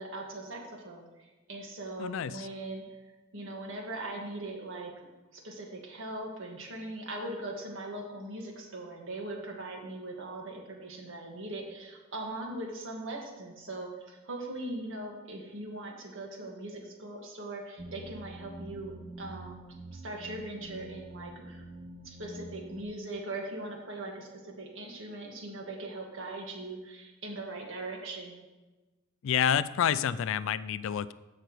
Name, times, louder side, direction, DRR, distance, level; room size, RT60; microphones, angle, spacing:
voice 1, 0.0-2.8 3.3-4.9 5.3-18.9 19.2-19.6 19.9-21.6 22.0-28.4, right 2 dB, 65° right, 1 dB, 1.7 m, -40 dB
voice 2, 2.0-2.5 29.2-31.1, left 8 dB, 70° left, 16 dB, 0.3 m, -28 dB
sound 1, 17.8-22.8, right 1 dB, 25° right, 0.5 m, -46 dB
14.5 x 6.0 x 3.1 m, 1.2 s
head